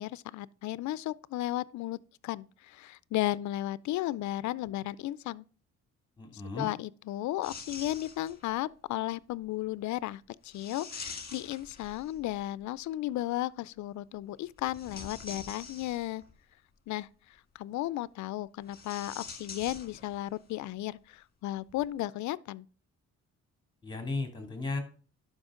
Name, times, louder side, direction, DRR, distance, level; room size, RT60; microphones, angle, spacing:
voice 1, 0.0-5.4 6.3-16.2 16.9-22.7, left 15 dB, 70° left, 0.5 m, -35 dB
voice 2, 6.2-6.7 23.8-24.8, left 3 dB, 15° left, 2.7 m, -35 dB
sound 1, 7.4-8.6 10.5-12.4 14.6-16.3 18.6-20.4 20.6-20.7 21.7-21.9, left 4 dB, 30° left, 1.7 m, -45 dB
11.5 x 5.3 x 3.7 m
cardioid pair, 90°, 30 cm